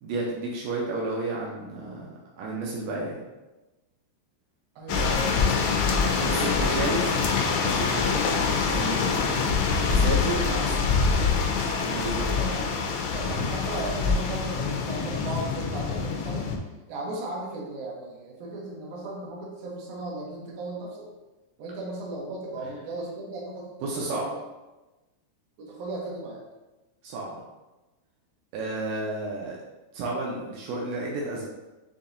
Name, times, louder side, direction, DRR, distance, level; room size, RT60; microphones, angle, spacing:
voice 1, 0.0-3.2 6.2-7.0 7.6-8.3 8.7-9.2 9.9-10.8 11.8-12.4 23.8-24.2 27.0-27.4 28.5-29.6 29.9-31.5, right 2 dB, 90° right, -3 dB, 1.9 m, -32 dB
voice 2, 4.8-5.8 6.1-7.3 8.1-8.3 12.4-12.6 13.1-16.5 16.9-21.1 21.6-24.3 25.6-26.4, right 2 dB, 75° right, -3 dB, 1.8 m, -36 dB
sound 1, 4.9-16.6, left 5 dB, 90° left, 2.7 m, -25 dB
6.9 x 2.7 x 2.6 m, 1.1 s
omnidirectional pair, 4.6 m